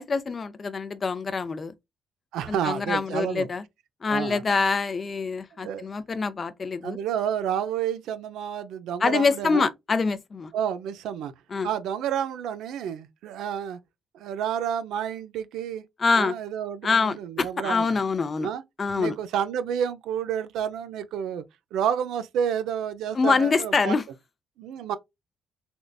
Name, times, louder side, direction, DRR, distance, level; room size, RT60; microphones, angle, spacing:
voice 1, 0.0-1.7 2.5-3.6 4.0-7.0 9.0-10.5 11.5-11.7 16.0-16.3 16.8-18.5 18.8-19.2 23.1-24.0, left 4 dB, 35° left, 0.4 m, -25 dB
voice 2, 2.3-3.5 4.1-4.4 5.6-5.8 6.8-9.7 10.5-11.3 11.6-13.8 14.1-15.8 16.1-17.9 18.4-18.6 19.0-21.4 21.7-24.0 24.6-25.0, right 9 dB, 85° right, 0.4 m, -30 dB
3.5 x 2.5 x 2.3 m
cardioid pair, 90°, 0 cm